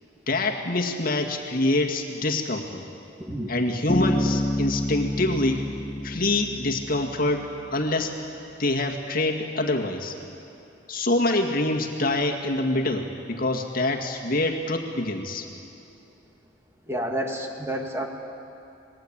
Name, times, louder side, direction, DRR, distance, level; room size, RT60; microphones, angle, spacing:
voice 1, 0.3-2.8 3.5-5.6 6.0-8.1 8.6-10.1 10.9-15.5, left 2 dB, 50° left, 2 dB, 2.1 m, -25 dB
voice 2, 3.2-3.5 16.9-18.1, right 1 dB, 15° right, 2 dB, 2.1 m, -29 dB
Bass guitar, 3.9-7.5, left 1 dB, 20° left, 0.6 m, -28 dB
26.5 x 20.5 x 8.9 m, 2.8 s
head